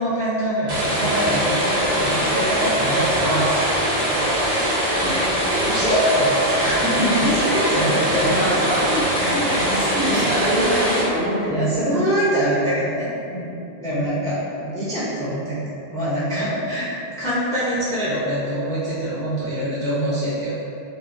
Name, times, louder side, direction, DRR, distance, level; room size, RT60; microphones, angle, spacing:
voice 1, 0.0-5.0 5.6-9.0 9.3-9.5 10.1-10.3 11.5-16.9 17.2-20.5, equal, 5° left, -10 dB, 0.4 m, -24 dB
sound 1, 0.7-11.0, equal, 45° right, 0.6 m, -22 dB
voice 2, 5.0-5.4 8.2-12.0 13.9-14.1 16.4-16.6, equal, 80° right, -8 dB, 1.0 m, -26 dB
2.4 x 2.2 x 2.5 m, 2.6 s
omnidirectional pair, 1.1 m